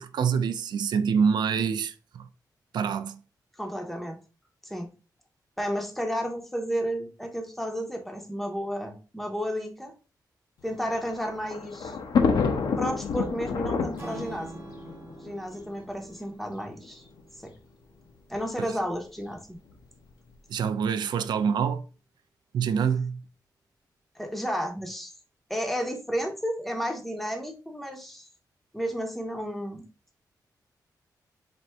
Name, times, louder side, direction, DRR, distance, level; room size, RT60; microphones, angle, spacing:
voice 1, 0.0-2.3 2.7-3.2 18.6-18.7 20.5-21.8 22.5-23.2, right 6 dB, 85° right, 0.3 m, -26 dB
voice 2, 3.6-4.2 4.6-4.9 5.6-9.9 10.6-12.0 12.8-14.6 15.2-17.1 17.4-17.5 18.3-19.6 24.1-25.1 25.5-28.3 28.7-29.8, equal, ahead, 0.7 m, -32 dB
Thunder, 10.7-16.0 16.8-16.9 17.2-17.3 18.3-18.6, left 5 dB, 70° left, 0.6 m, -28 dB
Strum, 14.0-18.2, right 2 dB, 25° right, 0.8 m, -46 dB
4.3 x 2.6 x 3.4 m
wide cardioid pair, 175°, 7 cm